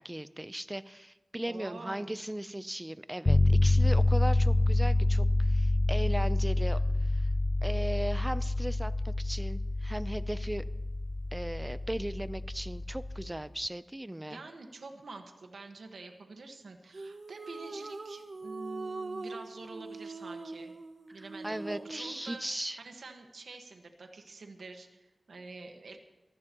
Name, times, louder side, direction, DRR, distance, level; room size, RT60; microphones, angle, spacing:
voice 1, 0.0-7.3 7.6-10.7 11.3-14.4 21.4-22.8, right 1 dB, 15° right, 14 dB, 0.6 m, -37 dB
voice 2, 1.4-2.2 6.7-6.9 14.3-20.7 21.1-26.0, right 3 dB, 85° right, 4 dB, 1.6 m, -47 dB
sound 1, 3.3-13.4, left 2 dB, 35° left, 0.5 m, -27 dB
sound 2, 16.9-22.3, right 3 dB, 60° right, 0.9 m, -42 dB
23.0 x 15.0 x 3.1 m, 1.1 s
wide cardioid pair, 55°, 0 cm